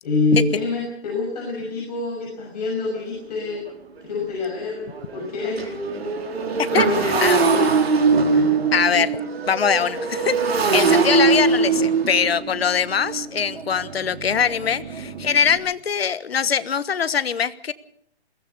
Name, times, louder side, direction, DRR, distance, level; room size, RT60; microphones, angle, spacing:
voice 1, 0.0-3.6 4.0-5.7 6.7-7.7 8.3-8.7, left 3 dB, 35° left, -2 dB, 6.3 m, -26 dB
Motorcycle, 3.0-3.1 3.5-3.7 4.0-15.6, right 4 dB, 65° right, 4.7 m, -22 dB
voice 2, 6.7-7.4 8.7-9.1 9.4-17.7, left 7 dB, 65° left, 15 dB, 1.4 m, -22 dB
21.5 x 18.5 x 6.8 m, 0.67 s
hypercardioid pair, 175°, 33 cm